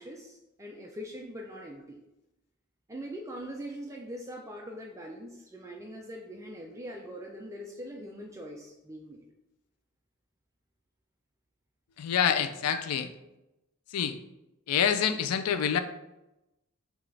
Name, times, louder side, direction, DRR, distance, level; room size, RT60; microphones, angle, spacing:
voice 1, 0.0-2.0 2.9-9.2, equal, 15° right, 0 dB, 0.4 m, -42 dB
voice 2, 12.0-13.0 13.9-14.2 14.7-15.8, left 8 dB, 85° left, 10 dB, 0.4 m, -26 dB
5.9 x 2.3 x 3.3 m, 0.93 s
head